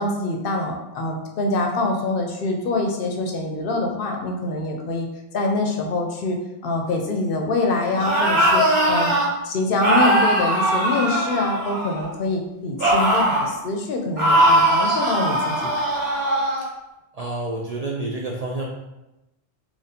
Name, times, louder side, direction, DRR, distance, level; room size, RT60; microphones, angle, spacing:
voice 1, 0.0-5.1 5.3-9.1 9.4-15.9, left 2 dB, 65° left, 2 dB, 0.7 m, -25 dB
sound 1, 7.9-9.3 9.8-12.1 12.8-13.5 14.2-16.7, right 1 dB, 70° right, 1.2 m, -20 dB
voice 2, 17.1-18.7, right 2 dB, 55° right, -2 dB, 0.4 m, -28 dB
3.0 x 2.6 x 4.1 m, 0.95 s
omnidirectional pair, 1.1 m